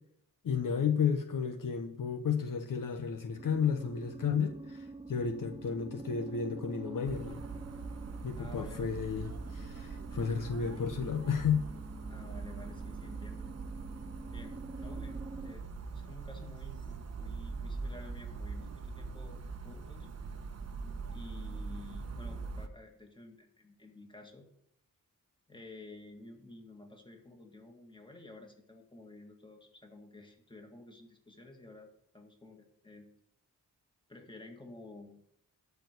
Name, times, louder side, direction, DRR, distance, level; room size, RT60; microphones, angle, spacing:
voice 1, 0.4-7.4 8.2-11.6, left 6 dB, 65° left, 6 dB, 1.0 m, -32 dB
sound 1, 3.4-15.5, right 3 dB, 15° right, 0.6 m, -47 dB
sound 2, 7.0-22.7, right 4 dB, 50° right, 1.0 m, -42 dB
voice 2, 8.4-8.9 12.1-13.5 14.3-15.7 15.9-20.1 21.1-24.5 25.5-33.1 34.1-35.3, left 2 dB, 15° left, 3 dB, 1.9 m, -52 dB
12.5 x 4.7 x 8.2 m, 0.73 s
wide cardioid pair, 120°, 34 cm